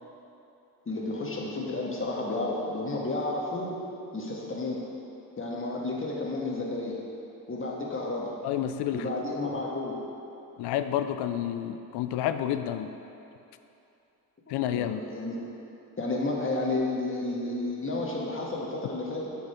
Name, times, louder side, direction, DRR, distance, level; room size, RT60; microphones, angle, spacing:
voice 1, 0.8-3.7 4.1-4.8 5.4-7.0 7.5-8.3 8.9-10.0 14.5-15.6 16.0-19.3, left 2 dB, 30° left, -2 dB, 1.6 m, -31 dB
voice 2, 8.4-9.1 10.6-12.9 14.5-15.0, left 11 dB, 80° left, 10 dB, 0.5 m, -29 dB
8.0 x 3.9 x 5.7 m, 2.8 s
supercardioid pair, 60°, 40 cm